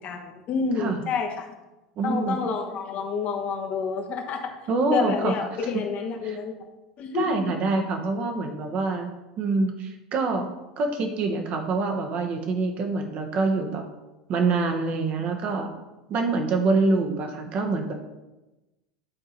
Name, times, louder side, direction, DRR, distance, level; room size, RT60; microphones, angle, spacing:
voice 1, 0.0-1.6 2.0-4.5 4.9-6.7 7.0-7.5, left 5 dB, 45° left, 4 dB, 1.1 m, -29 dB
voice 2, 2.0-2.4 4.7-5.3 6.2-6.4 7.1-9.1 9.4-13.8 14.3-15.8 16.1-17.9, right 3 dB, 45° right, 4 dB, 1.1 m, -25 dB
9.9 x 3.8 x 4.3 m, 1.0 s
hypercardioid pair, 80°, 3 cm